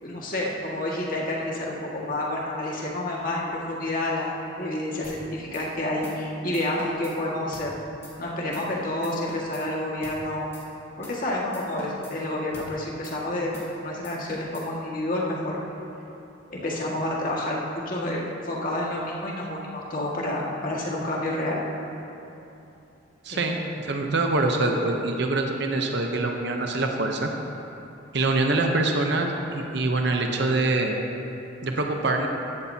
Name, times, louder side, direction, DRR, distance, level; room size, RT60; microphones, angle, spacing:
voice 1, 0.0-4.3 4.6-7.7 8.2-10.5 11.0-13.5 13.8-15.6 16.5-21.6 23.3-23.6, left 1 dB, 45° left, -4 dB, 1.9 m, -29 dB
sound 1, 5.0-5.2 5.5-5.7 6.0-6.2 6.5-7.2 7.5-7.7 8.0-8.1 8.5-8.7 9.0-9.7 10.0-10.2 10.5-10.7 11.0-11.2 11.5-12.2 12.5-12.7 13.0-13.2 13.5-13.7 14.0-14.7, left 1 dB, 15° left, 1.6 m, -44 dB
voice 2, 23.2-27.3 28.1-30.9 31.6-32.3, right 2 dB, 60° right, 2 dB, 0.8 m, -24 dB
15.0 x 11.5 x 2.8 m, 2.9 s
head